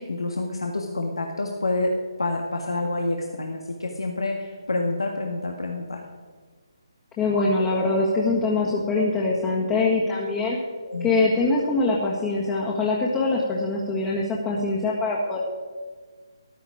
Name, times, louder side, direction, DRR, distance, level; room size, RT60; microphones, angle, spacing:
voice 1, 0.0-1.9 2.2-6.0 10.8-11.1, left 2 dB, 90° left, 2 dB, 1.7 m, -28 dB
voice 2, 7.2-10.6 11.0-15.4, left 3 dB, 15° left, -5 dB, 1.8 m, -23 dB
14.0 x 10.5 x 5.0 m, 1.5 s
figure-of-eight pair, 155°, 3 cm